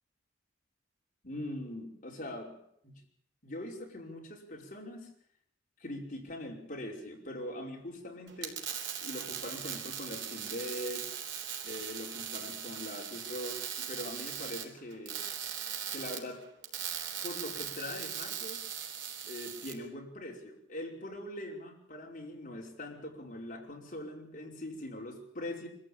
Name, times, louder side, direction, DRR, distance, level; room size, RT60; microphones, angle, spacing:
voice 1, 1.2-2.6 2.8-2.9 3.4-5.1 5.8-8.6 9.0-11.1 11.6-15.2 15.9-16.4 17.2-18.6 19.2-25.7, left 1 dB, 40° left, -1 dB, 5.3 m, -42 dB
sound 1, 8.3-19.7, right 8 dB, 70° right, 3.7 m, -39 dB
25.0 x 14.5 x 8.8 m, 0.71 s
head